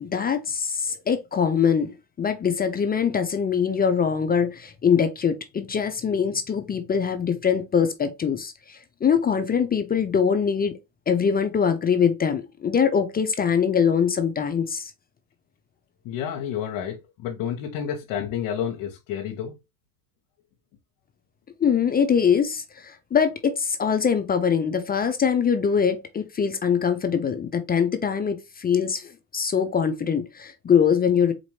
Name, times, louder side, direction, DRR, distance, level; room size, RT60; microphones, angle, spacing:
voice 1, 0.0-10.7 11.1-14.9 21.6-31.3, left 7 dB, 20° left, 0.4 m, -23 dB
voice 2, 16.0-19.6, left 9 dB, 65° left, 1.0 m, -30 dB
4.2 x 2.6 x 3.1 m
supercardioid pair, 95°, 45 cm